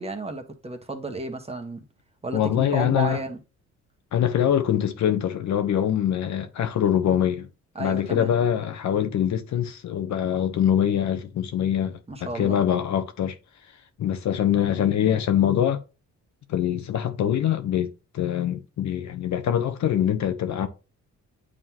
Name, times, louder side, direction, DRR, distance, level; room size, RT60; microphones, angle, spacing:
voice 1, 0.0-1.8 2.2-3.4 7.7-8.3 12.1-12.6, right 3 dB, 20° right, 1.4 m, -32 dB
voice 2, 2.3-3.2 4.1-7.5 7.8-13.3 14.0-15.8 16.5-20.7, left 10 dB, 70° left, 1.1 m, -24 dB
8.9 x 3.8 x 3.0 m
cardioid pair, 90°, 30 cm